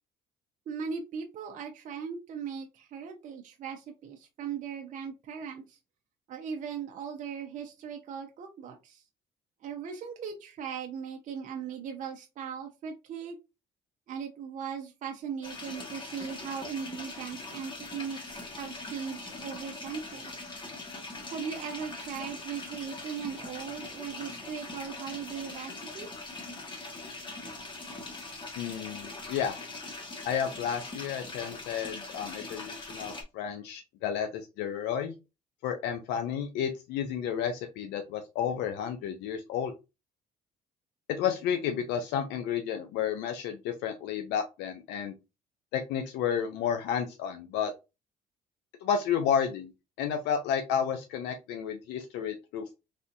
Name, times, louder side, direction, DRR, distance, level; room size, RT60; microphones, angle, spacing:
voice 1, 0.7-5.8 6.3-9.0 9.6-13.4 14.1-20.3 21.3-26.1, right 7 dB, 50° right, 3 dB, 0.6 m, -38 dB
sound 1, 15.4-33.2, left 2 dB, 30° left, 1.0 m, -42 dB
voice 2, 28.6-29.6 30.3-35.1 35.6-39.7 41.2-45.1 45.7-47.7 48.8-49.7 50.0-52.7, left 8 dB, 85° left, 6 dB, 0.5 m, -31 dB
3.4 x 2.7 x 2.5 m, 0.26 s
cardioid pair, 110°, 17 cm